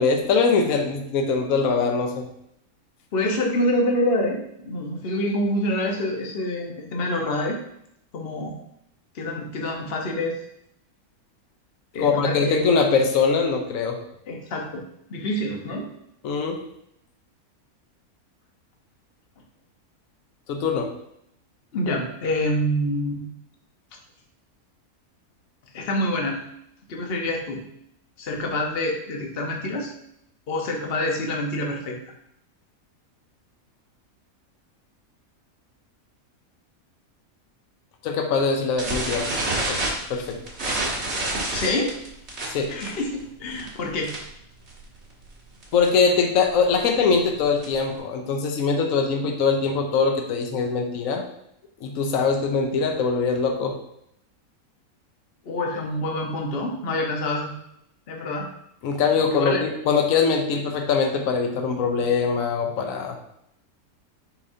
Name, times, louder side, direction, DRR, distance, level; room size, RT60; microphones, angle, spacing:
voice 1, 0.0-2.3 12.0-14.0 16.2-16.6 20.5-20.9 38.0-39.3 39.6-39.8 40.1-40.4 42.5-42.8 45.7-51.2 51.8-53.8 58.8-63.2, left 5 dB, 70° left, 3 dB, 1.1 m, -22 dB
voice 2, 3.1-7.6 8.1-8.6 9.1-10.4 11.9-12.7 14.3-14.8 15.1-15.9 21.7-23.2 25.7-26.4 26.9-27.6 28.2-29.9 30.5-32.0 41.5-41.9 42.7-44.1 55.4-57.5 58.1-58.5 59.2-59.6, left 1 dB, 45° left, 1 dB, 1.1 m, -26 dB
sound 1, 38.8-44.4 44.7-45.0 45.2-45.3 45.6-45.9 46.4-47.9, right 2 dB, 50° right, 1.7 m, -28 dB
6.9 x 5.1 x 2.7 m, 0.75 s
omnidirectional pair, 1.6 m